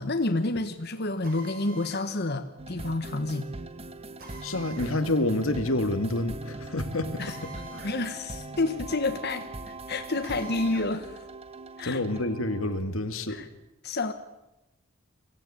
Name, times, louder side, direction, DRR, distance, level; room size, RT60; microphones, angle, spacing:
voice 1, 0.0-3.5 7.2-7.3 7.8-11.2 11.8-12.0 13.3-13.5 13.8-14.1, left 2 dB, 55° left, 7 dB, 1.4 m, -29 dB
Drill, 1.2-2.1 4.2-5.0 7.2-8.0 8.3-8.4 10.2-10.9, right 2 dB, 45° right, 6.5 m, -46 dB
sound 1, 2.6-13.0, right 2 dB, 30° right, 1.1 m, -41 dB
voice 2, 4.4-7.9 11.8-13.4, left 1 dB, 90° left, 8 dB, 2.0 m, -28 dB
24.0 x 15.5 x 8.6 m, 0.95 s
head